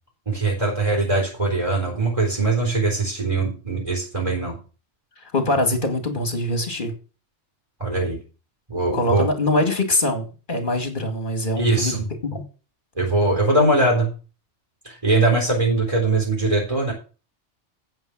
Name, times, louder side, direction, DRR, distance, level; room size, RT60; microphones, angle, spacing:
voice 1, 0.3-4.5 7.8-8.2 8.7-9.3 11.6-12.0 13.0-14.1 14.8-16.9, right 2 dB, 30° right, 0 dB, 4.1 m, -21 dB
voice 2, 5.3-6.9 8.9-12.4, left 1 dB, 45° left, 7 dB, 2.3 m, -23 dB
8.9 x 8.0 x 6.0 m, 0.35 s
omnidirectional pair, 1.2 m